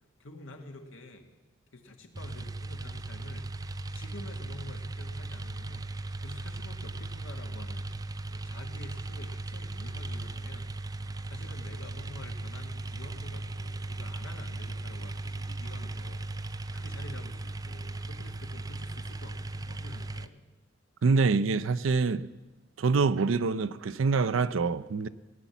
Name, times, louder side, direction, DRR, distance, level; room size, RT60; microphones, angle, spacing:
voice 1, 0.2-1.3 1.7-3.5 3.9-5.8 6.2-7.9 8.3-10.7 11.3-20.3, left 2 dB, 85° left, 1.8 m, -48 dB
sound 1, 2.1-20.3, right 2 dB, 20° right, 0.4 m, -37 dB
voice 2, 21.0-22.3 22.8-25.1, right 4 dB, 90° right, 0.5 m, -25 dB
17.0 x 9.2 x 7.1 m
head